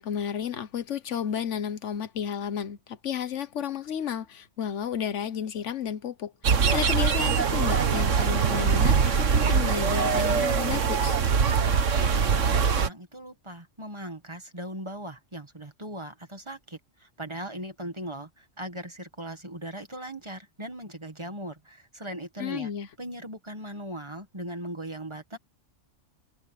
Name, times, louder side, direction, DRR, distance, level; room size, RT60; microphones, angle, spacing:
voice 1, 0.0-6.3 6.7-11.2 22.4-22.9, left 8 dB, 75° left, 1.2 m, -32 dB
sound 1, 6.4-12.9, right 6 dB, 80° right, 1.6 m, -23 dB
voice 2, 11.9-22.7 23.0-25.4, right 1 dB, 25° right, 1.9 m, -39 dB
omnidirectional pair, 1.3 m